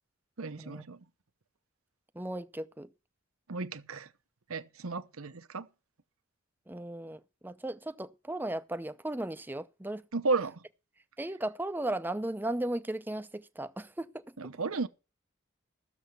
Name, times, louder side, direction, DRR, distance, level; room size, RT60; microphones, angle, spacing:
voice 1, 0.4-1.0 3.5-4.1 4.5-5.7 10.1-10.6 14.4-14.9, right 3 dB, 80° right, 0.9 m, -33 dB
voice 2, 2.2-2.9 6.7-10.0 11.2-14.2, right 1 dB, 10° right, 0.5 m, -36 dB
14.0 x 7.1 x 6.6 m
head